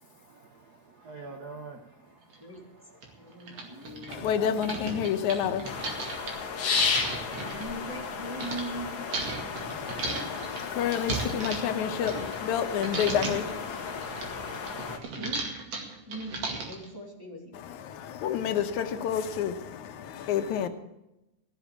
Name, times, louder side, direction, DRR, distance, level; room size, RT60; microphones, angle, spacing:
voice 1, 0.0-4.4 4.9-5.5 5.8-7.4, right 3 dB, 75° right, 0.9 m, -50 dB
sound 1, 2.3-2.4 3.0-3.1 3.4-8.6 9.1-12.6 12.8-13.5 13.9-16.9, right 3 dB, 55° right, 3.1 m, -35 dB
voice 2, 2.4-2.9 3.2-4.3 7.2-9.1 10.3-10.4 15.2-15.5 16.1-17.6, right 1 dB, 5° right, 2.7 m, -40 dB
voice 3, 4.1-5.9 9.6-14.1 17.5-20.7, left 8 dB, 80° left, 2.3 m, -30 dB
sound 2, 5.6-15.0, left 5 dB, 50° left, 1.7 m, -34 dB
15.5 x 7.3 x 8.5 m
omnidirectional pair, 3.4 m